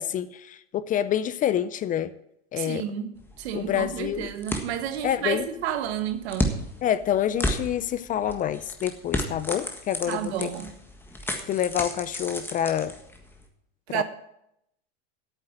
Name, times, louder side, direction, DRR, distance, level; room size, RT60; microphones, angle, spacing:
voice 1, 0.0-2.1 2.5-2.8 3.5-4.3 5.0-5.5 6.8-10.5 11.5-12.9 13.9-14.0, left 10 dB, 25° left, 0.4 m, -27 dB
voice 2, 2.6-6.5 10.1-10.7 13.9-14.0, right 10 dB, 80° right, 1.5 m, -31 dB
sound 1, 3.1-13.4, left 1 dB, 5° left, 1.6 m, -34 dB
8.9 x 7.7 x 9.1 m
supercardioid pair, 130°, 32 cm